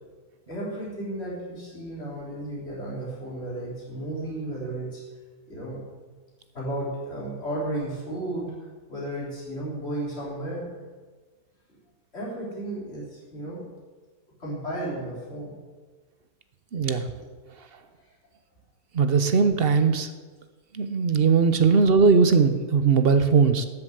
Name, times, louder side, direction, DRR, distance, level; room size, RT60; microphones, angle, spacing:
voice 1, 0.5-5.0 5.5-5.8 6.5-10.7 12.1-13.7 14.4-15.5, right 1 dB, 45° left, -6 dB, 4.2 m, -33 dB
voice 2, 16.7-17.1 18.9-20.1 20.7-23.7, right 5 dB, 45° right, 10 dB, 1.0 m, -19 dB
13.0 x 7.3 x 8.0 m, 1.4 s
omnidirectional pair, 1.5 m